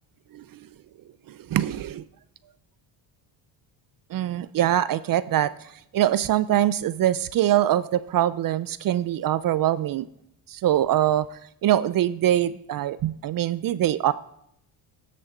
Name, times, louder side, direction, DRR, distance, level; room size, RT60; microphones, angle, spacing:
voice 1, 1.3-2.0 4.1-5.5 5.9-10.1 10.5-14.1, right 12 dB, 45° right, 17 dB, 0.4 m, -23 dB
13.5 x 7.6 x 3.8 m, 0.75 s
cardioid pair, 90°, 48 cm